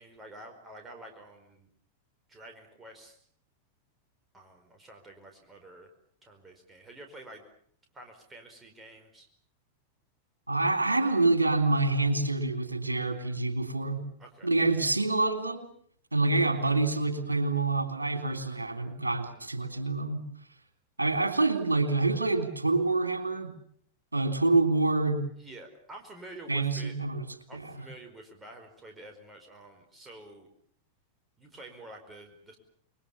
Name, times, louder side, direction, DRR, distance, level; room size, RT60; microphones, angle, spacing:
voice 1, 0.0-1.7 2.3-3.2 4.3-5.9 6.2-7.4 7.9-9.3 14.2-14.5 16.2-16.4 25.3-26.9 27.5-30.5 31.4-32.6, right 1 dB, 15° right, 3 dB, 4.8 m, -49 dB
voice 2, 10.5-14.1 14.4-15.7 16.1-20.2 21.0-23.5 24.1-25.2 26.5-27.3 27.5-27.7, right 3 dB, 80° right, 7 dB, 3.4 m, -27 dB
28.5 x 22.0 x 7.2 m, 0.63 s
figure-of-eight pair, 90°, 0 cm